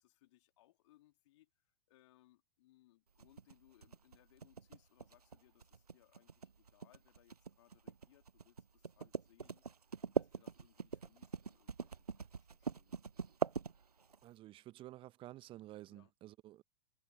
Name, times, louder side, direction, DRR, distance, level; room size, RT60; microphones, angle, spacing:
voice 1, 0.0-9.7 10.0-13.1 15.9-16.1, left 16 dB, 50° left, 3.2 m, -69 dB
sound 1, 3.2-14.2, right 5 dB, 80° right, 0.7 m, -42 dB
voice 2, 14.2-16.6, right 15 dB, 25° right, 0.9 m, -52 dB
figure-of-eight pair, 95°, 19 cm